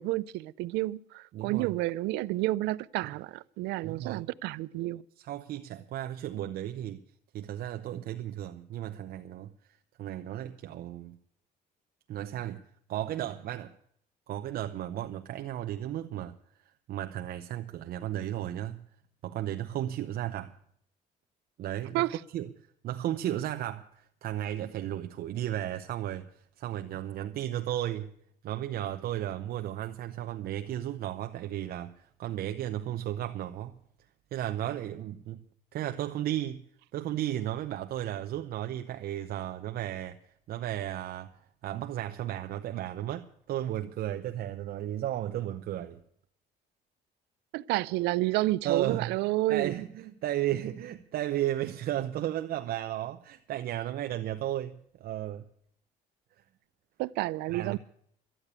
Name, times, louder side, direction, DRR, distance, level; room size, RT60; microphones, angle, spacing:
voice 1, 0.0-5.0 21.9-22.2 47.5-49.8 57.0-57.8, right 18 dB, 90° right, 0.5 m, -30 dB
voice 2, 1.3-1.7 3.0-3.1 3.8-4.2 5.2-7.0 7.3-11.2 12.1-12.6 12.9-13.7 14.3-16.4 16.9-18.9 19.2-20.5 21.6-22.1 22.3-22.5 22.8-26.3 26.6-28.1 28.4-33.8 34.3-35.4 35.7-36.6 36.9-46.0 48.6-49.2 49.5-55.4 57.5-57.8, right 12 dB, 65° right, 0.8 m, -34 dB
12.5 x 10.0 x 8.2 m
cardioid pair, 110°, 17 cm